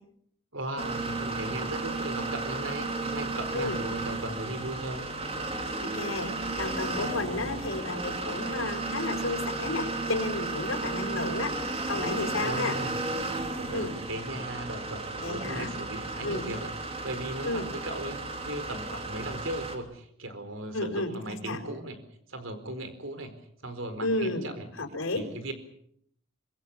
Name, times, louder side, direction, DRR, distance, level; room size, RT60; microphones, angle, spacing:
voice 1, 0.5-5.1 12.4-13.0 13.5-16.7 17.0-22.0 22.3-23.4 23.6-24.7 25.1-25.5, right 1 dB, 65° right, 9 dB, 4.5 m, -37 dB
sound 1, 0.8-19.8, right 3 dB, 30° right, 3.2 m, -34 dB
voice 2, 5.8-11.6 11.9-12.8 13.7-13.9 15.2-15.7 16.2-16.5 17.4-17.7 20.7-21.6 24.0-24.5 24.8-25.2, left 2 dB, 75° left, 0 dB, 4.9 m, -32 dB
25.5 x 23.5 x 7.2 m, 0.70 s
head